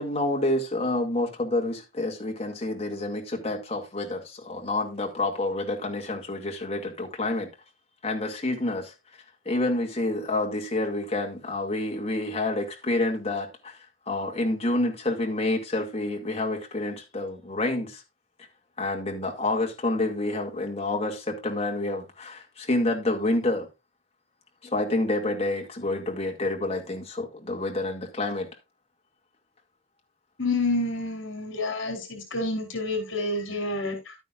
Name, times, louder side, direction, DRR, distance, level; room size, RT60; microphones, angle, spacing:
voice 1, 0.0-7.5 8.0-8.9 9.5-18.0 18.8-23.7 24.6-28.5, left 2 dB, 30° left, 2.1 m, -28 dB
voice 2, 30.4-34.2, left 2 dB, 70° left, 4.0 m, -29 dB
12.0 x 9.2 x 2.5 m
head